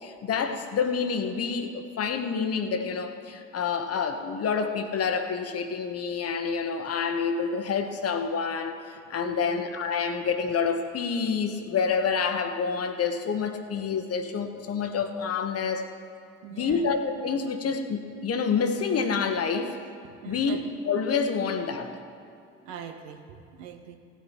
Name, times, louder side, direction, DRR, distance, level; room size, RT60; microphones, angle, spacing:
voice 1, 0.0-8.8 9.1-15.9 16.6-19.7 20.3-20.6 20.9-21.9, left 5 dB, 40° left, 7 dB, 1.2 m, -28 dB
voice 2, 9.2-9.7 16.4-16.9 20.0-20.6 22.6-24.0, right 8 dB, 65° right, 6 dB, 1.1 m, -42 dB
16.5 x 9.2 x 4.5 m, 2.5 s
figure-of-eight pair, 55°, 36 cm